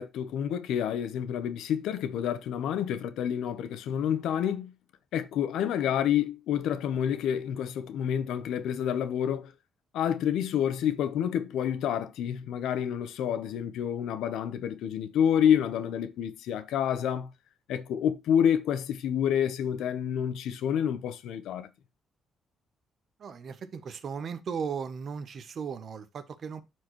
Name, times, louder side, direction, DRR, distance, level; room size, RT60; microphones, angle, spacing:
voice 1, 0.0-4.7 5.1-9.5 9.9-17.3 17.7-21.7, left 9 dB, 85° left, 0.8 m, -28 dB
voice 2, 23.2-26.6, right 6 dB, 45° right, 0.8 m, -36 dB
12.0 x 4.7 x 3.0 m
cardioid pair, 155°, 0 cm